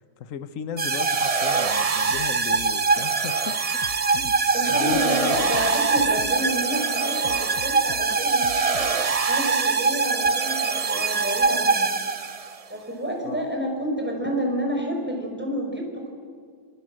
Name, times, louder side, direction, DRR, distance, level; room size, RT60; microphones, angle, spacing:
voice 1, 0.0-3.8 4.1-4.4 4.6-5.5 13.2-13.5, left 7 dB, 55° left, 13 dB, 1.4 m, -36 dB
sound 1, 0.8-12.6, right 4 dB, 35° right, 0.6 m, -23 dB
sound 2, 2.1-3.3 3.6-6.7 7.0-9.0, left 7 dB, 75° left, 1.5 m, -43 dB
voice 2, 4.5-8.9 9.3-12.0 12.7-16.1, equal, 5° right, 1 dB, 5.1 m, -29 dB
26.5 x 24.0 x 7.7 m, 2.1 s
omnidirectional pair, 1.7 m